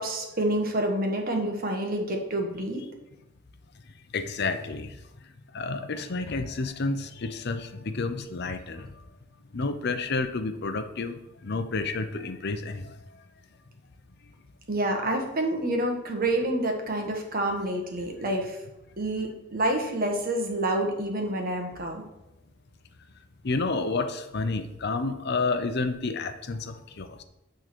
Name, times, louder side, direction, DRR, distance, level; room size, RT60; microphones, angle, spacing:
voice 1, 0.0-2.9 14.7-18.6 19.0-22.0, right 1 dB, 45° right, 3 dB, 1.4 m, -28 dB
voice 2, 4.1-5.0 5.5-9.0 9.5-13.0 23.4-27.2, left 3 dB, 55° left, 8 dB, 0.7 m, -30 dB
9.3 x 3.8 x 6.1 m, 0.92 s
head